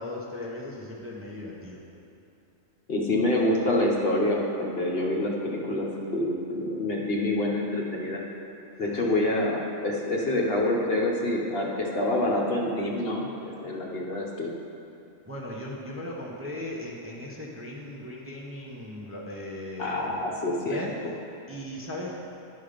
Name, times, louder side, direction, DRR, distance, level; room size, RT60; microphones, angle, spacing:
voice 1, 0.0-1.8 8.8-9.1 15.3-20.1 20.6-20.9 21.5-22.2, left 1 dB, 15° right, -4 dB, 0.7 m, -37 dB
voice 2, 2.9-8.2 8.8-14.5 19.8-21.1, left 1 dB, 50° left, -2 dB, 1.1 m, -27 dB
11.0 x 5.5 x 5.0 m, 2.8 s
omnidirectional pair, 1.3 m